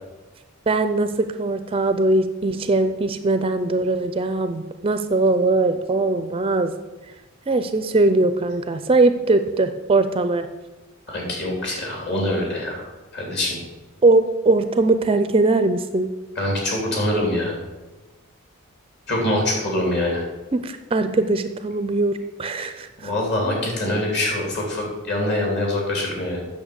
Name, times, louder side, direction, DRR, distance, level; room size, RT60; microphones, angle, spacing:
voice 1, 0.7-6.7 7.5-10.5 14.0-16.1 20.5-23.1 23.4-23.6, right 2 dB, 25° right, 9 dB, 0.4 m, -20 dB
voice 2, 11.1-12.9 13.1-13.6 16.4-17.6 19.1-20.2 23.0-26.5, left 1 dB, 50° left, -1 dB, 3.2 m, -24 dB
8.7 x 6.7 x 6.8 m, 1.2 s
head